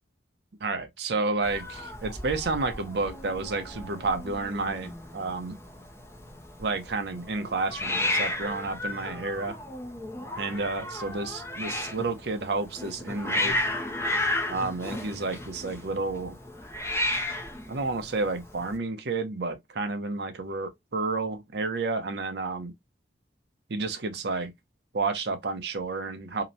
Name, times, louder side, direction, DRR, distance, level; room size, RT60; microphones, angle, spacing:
voice 1, 0.6-5.6 6.6-9.6 10.4-13.6 14.5-16.4 17.7-22.7 23.7-24.5 24.9-26.4, right 3 dB, 60° right, 0.6 m, -30 dB
Hiss, 1.4-18.8, left 1 dB, 15° left, 0.4 m, -33 dB
2.8 x 2.1 x 2.5 m
head